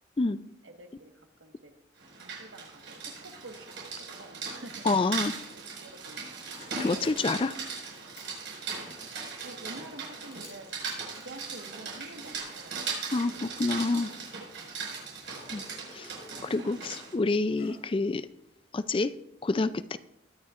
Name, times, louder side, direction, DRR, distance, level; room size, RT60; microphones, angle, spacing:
voice 1, 0.6-1.7 2.1-2.8 3.2-3.6 4.2-4.8 5.1-6.2 9.4-10.9 11.2-13.0 13.2-13.8 14.9-15.0, right 2 dB, 90° right, 4 dB, 1.5 m, -48 dB
Rain, 2.0-17.1, right 5 dB, 70° right, 5.3 m, -39 dB
voice 2, 4.8-5.3 6.8-7.6 13.1-14.1 15.5-15.6 15.9-16.1 16.4-18.3 18.7-19.1 19.4-20.0, left 3 dB, 25° left, 13 dB, 0.4 m, -28 dB
Zipper (clothing), 6.5-12.7 13.0-17.9, left 2 dB, 50° left, 5.7 m, -53 dB
21.5 x 9.9 x 2.5 m, 0.83 s
head